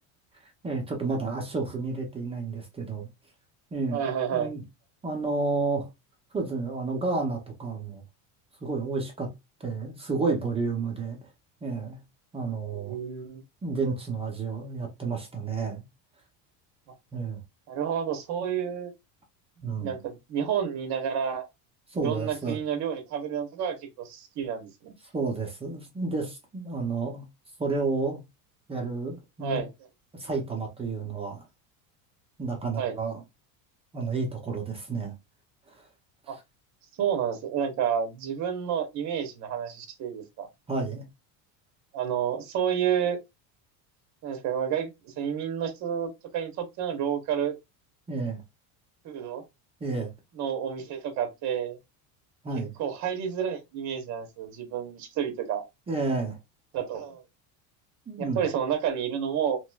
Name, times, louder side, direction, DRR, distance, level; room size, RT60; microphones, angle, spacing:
voice 1, 0.6-3.1 3.7-4.6 5.0-5.9 6.3-8.0 8.6-9.3 9.6-11.2 11.6-12.0 12.3-12.9 13.6-15.8 17.1-17.4 19.6-20.0 21.9-22.6 25.1-27.2 27.6-28.2 28.7-29.6 30.1-31.4 32.4-33.2 33.9-35.1 40.7-41.0 48.1-48.4 49.8-50.1 52.4-52.7 55.9-56.4 58.1-58.4, right 4 dB, 15° right, 0.4 m, -30 dB
voice 2, 3.9-4.5 12.7-13.4 17.7-18.9 19.8-21.5 22.0-24.9 29.4-29.7 32.8-32.9 36.3-36.4 37.0-40.5 41.9-43.2 44.2-47.5 49.0-49.4 50.4-51.8 52.8-55.6 56.7-57.2 58.2-59.6, right 8 dB, 40° right, 0.9 m, -30 dB
3.0 x 2.9 x 2.2 m
cardioid pair, 150°, 43 cm